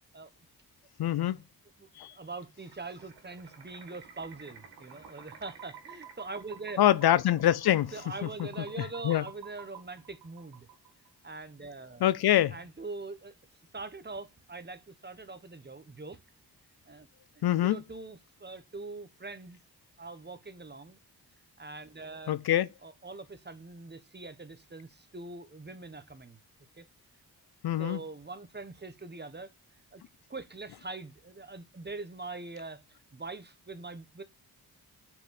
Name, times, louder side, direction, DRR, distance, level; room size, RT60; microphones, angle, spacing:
voice 1, 1.0-1.4 2.0-2.1 6.8-7.9 9.0-9.2 12.0-12.5 17.4-17.8 22.3-22.7 27.6-28.0, left 12 dB, 70° left, 0.5 m, -24 dB
voice 2, 1.8-6.8 7.9-10.7 11.2-12.0 12.5-13.3 13.7-16.2 16.9-17.1 17.3-19.6 20.0-21.0 21.6-22.3 22.8-26.4 26.8-26.9 27.8-29.5 29.9-30.0 30.3-34.2, right 3 dB, 25° right, 1.3 m, -43 dB
sound 1, 2.6-11.1, right 7 dB, 85° right, 2.2 m, -51 dB
6.0 x 4.8 x 5.8 m
cardioid pair, 55°, 39 cm